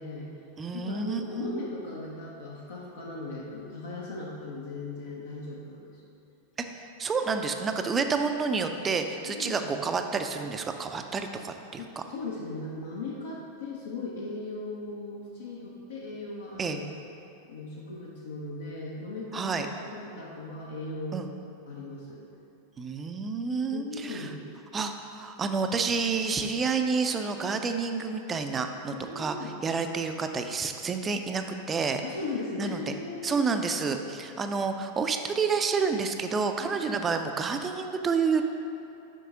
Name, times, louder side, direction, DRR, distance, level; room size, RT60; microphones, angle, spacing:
voice 1, 0.0-5.9 9.3-9.8 11.8-16.9 17.4-21.2 21.7-22.2 23.7-24.4 28.9-29.5 32.0-33.5 36.6-37.0, left 3 dB, 65° left, -4 dB, 0.8 m, -38 dB
voice 2, 0.6-1.6 6.7-12.0 16.6-16.8 19.3-19.7 21.1-21.3 22.8-24.3 24.7-32.0 32.6-32.9 33.2-38.4, right 5 dB, 20° right, 6 dB, 0.4 m, -29 dB
7.5 x 5.4 x 3.7 m, 2.8 s
figure-of-eight pair, 90°, 0 cm